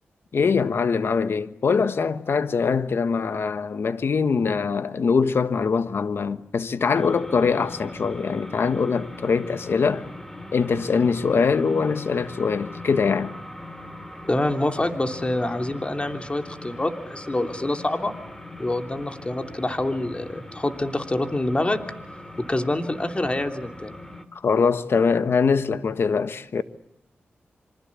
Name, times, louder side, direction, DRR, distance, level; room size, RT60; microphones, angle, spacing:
voice 1, 0.3-10.1 10.5-13.3 24.3-26.6, left 5 dB, 70° left, 1.4 m, -23 dB
sound 1, 6.9-24.3, left 1 dB, 10° left, 2.8 m, -40 dB
voice 2, 14.3-18.1 18.6-21.8 22.4-23.9, left 1 dB, 25° left, 3.0 m, -26 dB
27.0 x 25.0 x 8.5 m
cardioid pair, 55°, 4 cm